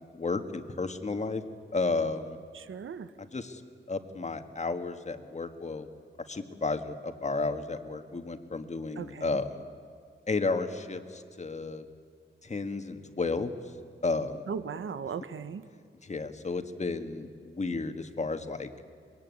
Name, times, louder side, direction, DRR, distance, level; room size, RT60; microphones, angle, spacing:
voice 1, 0.0-1.4 1.7-2.4 3.2-3.6 3.9-5.9 6.3-9.6 10.3-11.8 12.4-13.5 14.0-14.4 16.0-18.7, left 3 dB, 35° left, 8 dB, 1.7 m, -32 dB
voice 2, 2.5-3.1 9.0-9.3 14.5-15.7, right 6 dB, 85° right, 12 dB, 1.2 m, -37 dB
24.0 x 22.5 x 9.6 m, 2.2 s
wide cardioid pair, 120°, 20 cm